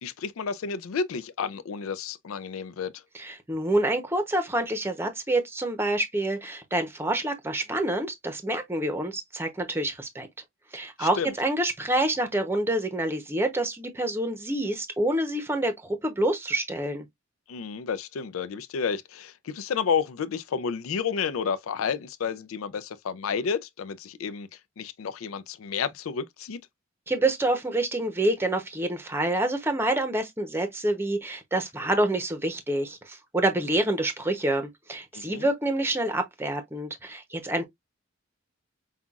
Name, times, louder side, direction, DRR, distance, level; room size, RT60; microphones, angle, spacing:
voice 1, 0.0-2.9 11.0-11.3 17.5-24.5 24.8-26.6 35.1-35.5, left 6 dB, 90° left, 0.4 m, -31 dB
voice 2, 3.1-10.3 10.7-17.0 27.1-37.7, right 1 dB, 10° right, 0.7 m, -27 dB
5.5 x 2.3 x 2.3 m
head